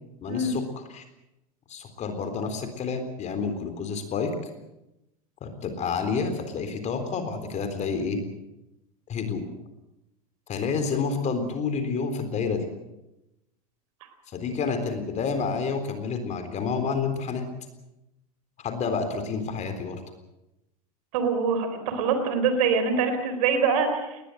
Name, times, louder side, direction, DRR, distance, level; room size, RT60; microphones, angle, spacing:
voice 1, 0.2-1.0 1.7-4.4 5.4-8.2 9.1-9.4 10.5-12.7 14.3-17.5 18.6-20.0, left 5 dB, 35° left, 8 dB, 3.8 m, -29 dB
voice 2, 21.1-24.2, right 5 dB, 70° right, 8 dB, 4.2 m, -24 dB
20.5 x 20.0 x 7.9 m, 0.92 s
hypercardioid pair, 95°, 19 cm